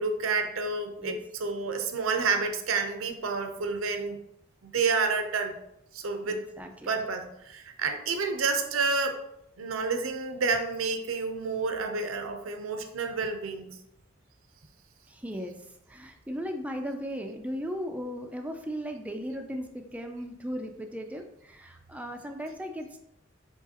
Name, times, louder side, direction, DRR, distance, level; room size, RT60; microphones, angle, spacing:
voice 1, 0.0-4.2 4.6-5.6 5.9-6.4 6.8-9.2 9.6-13.8, right 4 dB, 90° right, 6 dB, 0.6 m, -29 dB
voice 2, 6.2-6.9 15.1-23.0, equal, 5° right, 4 dB, 0.3 m, -37 dB
4.7 x 3.8 x 2.8 m, 0.80 s
head